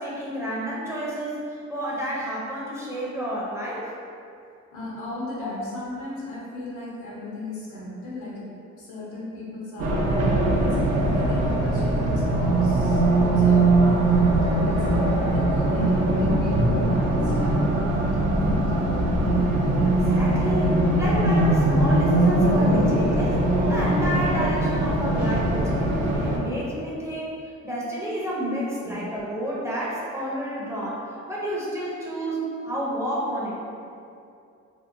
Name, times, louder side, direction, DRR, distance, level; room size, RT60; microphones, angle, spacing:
voice 1, 0.0-3.9 5.4-5.5 19.9-33.6, equal, 10° right, -7 dB, 0.6 m, -30 dB
voice 2, 4.7-8.4 8.8-17.9 18.4-19.5 28.8-28.9, left 1 dB, 90° left, -7 dB, 0.8 m, -36 dB
Race car auto racing, 9.8-26.4, right 2 dB, 55° right, 0.5 m, -21 dB
2.7 x 2.1 x 2.5 m, 2.5 s
cardioid pair, 90°, 30 cm